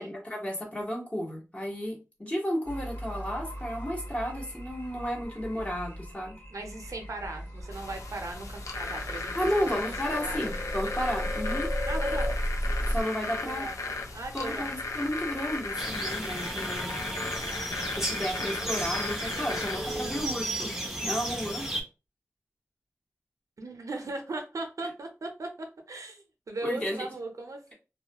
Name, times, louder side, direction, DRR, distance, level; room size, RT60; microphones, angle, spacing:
voice 1, 0.0-6.4 9.3-11.7 12.9-13.6 14.3-16.9 18.0-21.7 26.6-27.1, equal, 25° left, -2 dB, 1.1 m, -33 dB
sound 1, 2.7-13.0, equal, 50° left, 1.2 m, -35 dB
voice 2, 6.5-9.4 9.6-9.8 10.1-10.5 11.9-12.3 13.2-14.7 18.2-18.8 19.0-19.2 23.6-27.7, right 2 dB, 85° right, 4 dB, 0.5 m, -38 dB
sound 2, 7.7-20.3, left 3 dB, 80° left, 0.5 m, -36 dB
sound 3, 15.8-21.8, right 1 dB, 10° right, 0.6 m, -34 dB
2.3 x 2.1 x 2.8 m, 0.30 s
wide cardioid pair, 80°, 5 cm